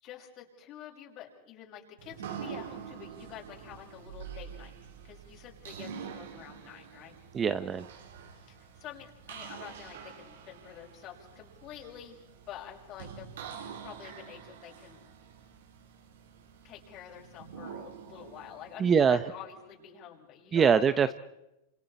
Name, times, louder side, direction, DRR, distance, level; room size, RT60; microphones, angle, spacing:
voice 1, 0.0-7.2 8.3-12.2 12.5-13.3 13.8-15.1 16.6-21.1, left 10 dB, 40° left, 0 dB, 6.2 m, -48 dB
sound 1, 2.0-19.8, right 7 dB, 85° right, 4.0 m, -46 dB
voice 2, 7.3-7.8 18.8-19.2 20.5-21.1, right 6 dB, 20° right, 12 dB, 0.8 m, -23 dB
29.0 x 26.5 x 4.4 m, 0.90 s
supercardioid pair, 140°, 0 cm